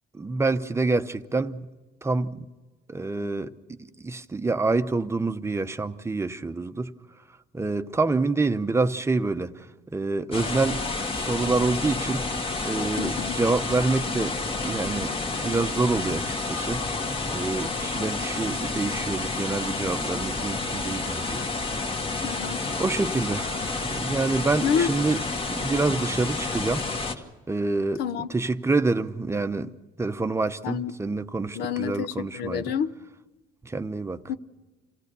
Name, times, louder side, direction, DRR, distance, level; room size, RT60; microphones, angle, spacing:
voice 1, 0.1-1.7 2.0-2.5 2.9-3.5 4.0-6.9 7.5-9.7 9.9-10.8 11.1-12.2 12.6-15.2 15.4-16.8 17.3-21.4 22.8-25.2 25.5-26.9 27.5-29.7 30.0-32.7 33.6-34.2, right 3 dB, 15° right, 0.7 m, -27 dB
sound 1, 10.3-27.1, left 3 dB, 35° left, 1.9 m, -30 dB
voice 2, 13.0-13.3 22.2-22.6 24.6-24.9 28.0-28.3 30.6-30.9 31.6-32.9 34.3-34.4, left 7 dB, 75° left, 0.8 m, -28 dB
26.5 x 16.0 x 6.8 m
cardioid pair, 110°, 17 cm